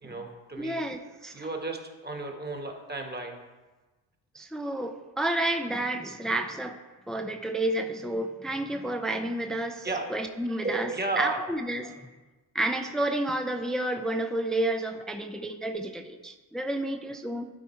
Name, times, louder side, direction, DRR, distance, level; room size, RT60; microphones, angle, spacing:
voice 1, 0.0-0.8 1.3-3.4 9.8-10.2 10.6-11.4 11.9-12.0, right 3 dB, 20° right, 3 dB, 1.6 m, -33 dB
voice 2, 0.6-1.5 4.3-6.8 7.1-10.9 11.2-11.9 12.5-17.5, right 1 dB, ahead, 6 dB, 0.6 m, -30 dB
12.0 x 4.2 x 4.5 m, 1.2 s
supercardioid pair, 60°, 46 cm